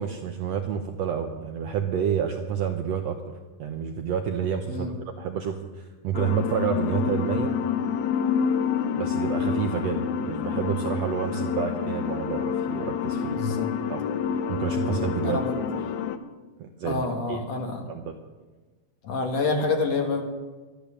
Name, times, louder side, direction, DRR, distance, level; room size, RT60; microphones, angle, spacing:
voice 1, 0.0-3.2 3.6-7.5 8.9-13.5 13.9-14.0 14.5-15.4 16.6-17.4 17.9-18.1, right 8 dB, 75° right, 4 dB, 1.6 m, -29 dB
sound 1, 6.1-16.2, left 7 dB, 75° left, 1.9 m, -28 dB
voice 2, 13.3-13.7 14.8-15.5 16.8-17.8 19.0-20.2, left 3 dB, 55° left, 3 dB, 2.4 m, -28 dB
12.5 x 11.5 x 7.1 m, 1.3 s
omnidirectional pair, 3.9 m